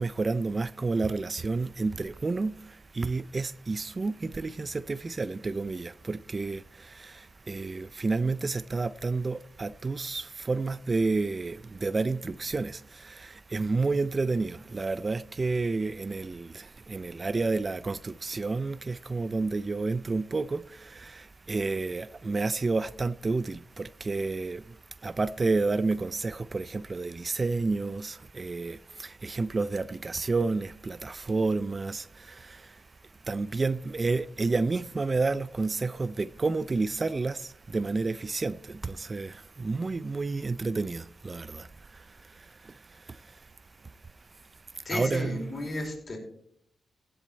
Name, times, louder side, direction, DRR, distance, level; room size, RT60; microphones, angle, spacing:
voice 1, 0.0-32.8 33.2-43.4 44.8-45.5, right 3 dB, 40° right, 0.4 m, -30 dB
voice 2, 44.8-46.2, left 1 dB, 45° left, 4.8 m, -34 dB
16.0 x 7.8 x 4.4 m
cardioid pair, 60°, 0 cm